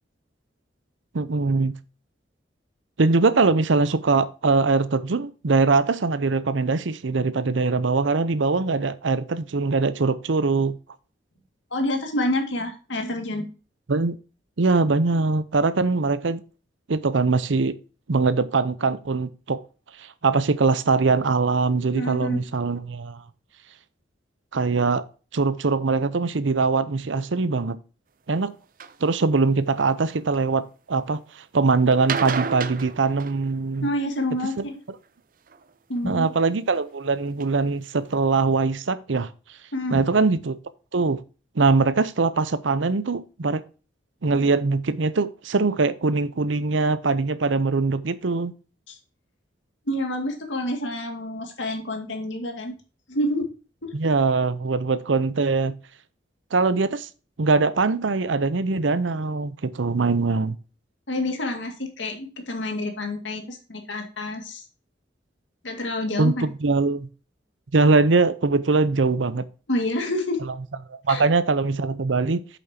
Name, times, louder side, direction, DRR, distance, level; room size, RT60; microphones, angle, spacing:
voice 1, 1.1-1.7 3.0-10.8 13.9-14.2 14.6-16.4 16.9-17.7 18.1-19.6 20.0-23.2 24.5-25.1 25.3-27.8 28.3-28.5 29.0-33.9 34.6-34.7 36.1-39.3 39.9-40.6 40.9-41.2 41.6-43.6 44.2-48.5 53.9-55.8 56.5-57.1 57.4-60.6 66.2-67.1 67.7-69.4 70.9-72.4, right 4 dB, 85° right, 0.7 m, -22 dB
voice 2, 11.7-13.5 21.9-22.4 33.8-34.8 35.9-36.3 39.7-40.0 48.9-49.0 49.9-52.7 53.1-53.5 53.8-53.9 61.1-64.6 65.6-66.5 69.7-70.4 71.1-71.2, left 1 dB, 80° left, 2.1 m, -28 dB
sound 1, 28.8-29.0 29.7-30.4 31.9-33.9 35.5-36.0 36.7-36.8 37.4-37.5 37.8-37.9 38.1-38.2, right 6 dB, 45° right, 0.6 m, -32 dB
8.4 x 7.2 x 2.8 m
head